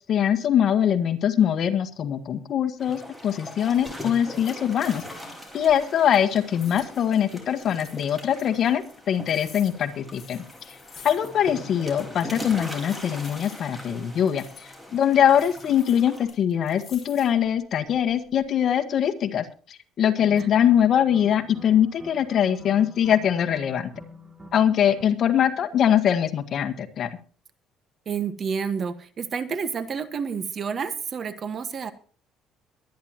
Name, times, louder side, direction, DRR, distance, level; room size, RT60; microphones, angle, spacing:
voice 1, 0.1-5.0 5.5-10.4 10.7-10.8 11.0-23.9 24.5-27.1, left 9 dB, 50° left, 7 dB, 1.7 m, -22 dB
sound 1, 2.8-16.2, left 1 dB, 5° right, 4.6 m, -40 dB
sound 2, 3.6-4.0 4.3-5.4 5.7-8.0 8.4-11.6 11.8-11.9 12.5-14.7 15.3-17.5 18.0-18.5, left 6 dB, 35° left, 5.5 m, -49 dB
sound 3, 20.1-25.1, equal, 25° right, 3.3 m, -46 dB
voice 2, 28.0-31.9, right 6 dB, 40° right, 12 dB, 1.5 m, -29 dB
22.5 x 10.5 x 3.0 m, 0.39 s
cardioid pair, 120°, 0 cm